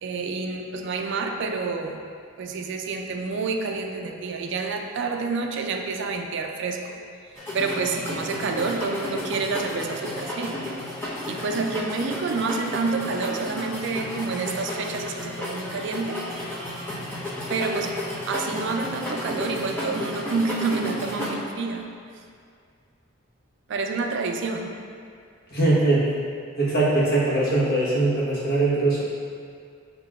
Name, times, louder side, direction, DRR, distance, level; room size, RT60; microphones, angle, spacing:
voice 1, 0.0-2.0 2.4-7.0 7.5-10.6 11.3-16.2 17.5-17.9 18.3-21.9 23.7-24.8, right 4 dB, 60° right, 3 dB, 0.4 m, -28 dB
sound 1, 7.4-21.3, left 1 dB, 10° left, 0.8 m, -33 dB
voice 2, 25.5-26.2 26.6-29.0, right 2 dB, 50° left, -7 dB, 1.2 m, -21 dB
7.5 x 2.8 x 2.4 m, 2.2 s
head